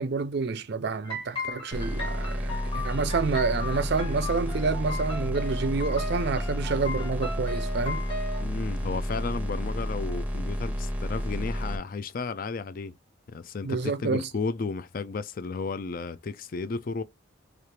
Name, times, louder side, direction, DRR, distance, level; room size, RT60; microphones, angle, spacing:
voice 1, 0.0-8.0 13.6-14.3, right 4 dB, 50° right, 0.5 m, -28 dB
sound 1, 1.0-8.4, left 2 dB, 25° left, 1.6 m, -37 dB
sound 2, 1.7-11.8, equal, 10° right, 0.6 m, -31 dB
voice 2, 8.4-12.9 13.3-17.0, left 4 dB, 40° left, 0.4 m, -33 dB
3.3 x 2.4 x 4.3 m
head